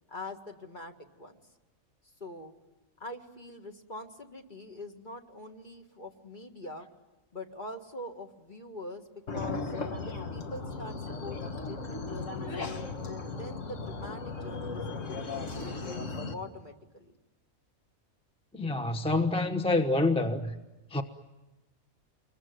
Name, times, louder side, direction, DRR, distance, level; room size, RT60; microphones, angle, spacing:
voice 1, 0.1-1.4 2.2-2.5 3.0-6.9 7.3-9.0 9.3-12.8 13.3-15.2 15.6-17.2, left 2 dB, 35° left, 2.0 m, -44 dB
sound 1, 9.3-16.3, left 3 dB, 65° left, 2.1 m, -36 dB
voice 2, 18.5-20.5 20.9-21.0, left 2 dB, 5° left, 1.0 m, -27 dB
27.0 x 22.5 x 9.4 m
omnidirectional pair, 1.4 m